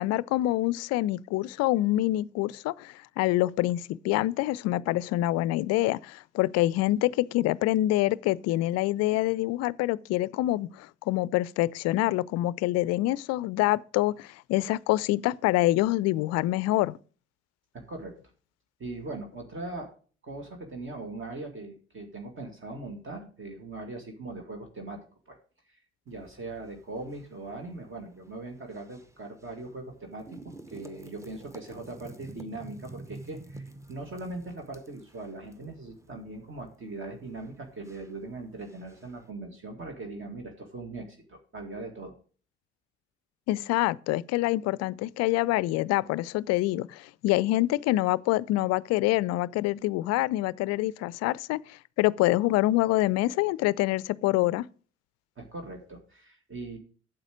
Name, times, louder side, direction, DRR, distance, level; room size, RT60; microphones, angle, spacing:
voice 1, 0.0-17.0 43.5-54.7, left 16 dB, 50° left, 0.4 m, -26 dB
voice 2, 17.7-18.1 18.8-19.9 20.2-25.4 25.7-42.2 55.4-56.8, right 2 dB, 35° right, 2.0 m, -40 dB
sound 1, 26.1-39.3, right 2 dB, 10° right, 1.0 m, -50 dB
9.0 x 7.5 x 5.0 m
figure-of-eight pair, 55°, 34 cm